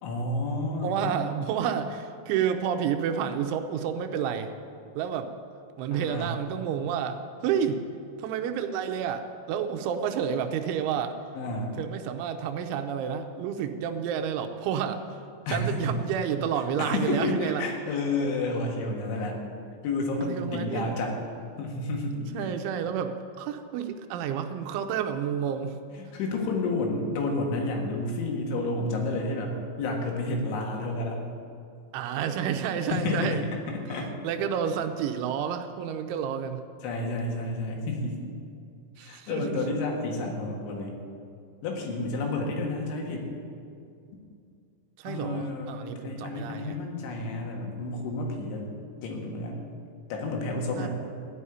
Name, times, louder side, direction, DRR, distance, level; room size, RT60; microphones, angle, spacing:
voice 1, 0.0-1.2 5.9-6.3 11.4-11.7 15.5-16.0 16.8-19.4 19.8-21.2 21.6-22.2 26.0-31.2 32.9-33.4 33.9-34.1 36.8-38.2 39.0-41.0 41.6-43.3 45.1-48.7 49.0-49.6 50.1-50.9, left 2 dB, 80° left, 1 dB, 4.1 m, -30 dB
voice 2, 0.8-4.5 5.0-5.3 5.8-7.8 8.2-11.2 11.8-15.0 15.5-17.7 20.2-20.9 22.1-25.8 31.9-33.4 33.9-36.6 39.0-39.6 45.0-46.8 50.7-50.9, right 8 dB, 85° right, 6 dB, 3.2 m, -30 dB
15.5 x 5.6 x 9.8 m, 2.4 s
omnidirectional pair, 5.3 m